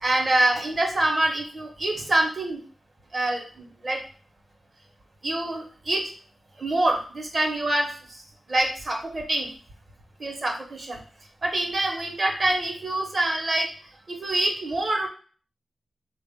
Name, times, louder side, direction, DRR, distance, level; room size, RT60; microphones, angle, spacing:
voice 1, 0.0-2.6 3.1-3.4 3.8-4.0 5.2-6.0 6.6-7.9 8.5-9.5 10.2-11.0 11.4-13.7 14.2-15.1, right 1 dB, 40° right, 2 dB, 0.9 m, -25 dB
3.8 x 2.4 x 3.6 m, 0.42 s
wide cardioid pair, 100°, 0 cm